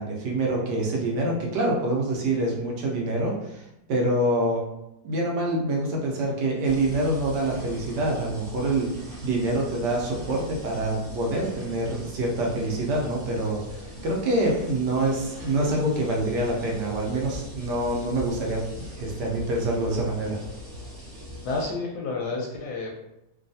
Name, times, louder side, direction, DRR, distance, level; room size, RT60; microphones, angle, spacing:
voice 1, 0.0-4.6 5.0-8.9 9.2-18.6 19.0-20.4, right 1 dB, 75° right, -2 dB, 1.2 m, -26 dB
sound 1, 6.6-21.7, left 1 dB, 35° right, 1.1 m, -40 dB
voice 2, 21.4-22.9, left 3 dB, 70° left, -2 dB, 1.0 m, -30 dB
3.2 x 2.3 x 2.6 m, 0.88 s
omnidirectional pair, 1.9 m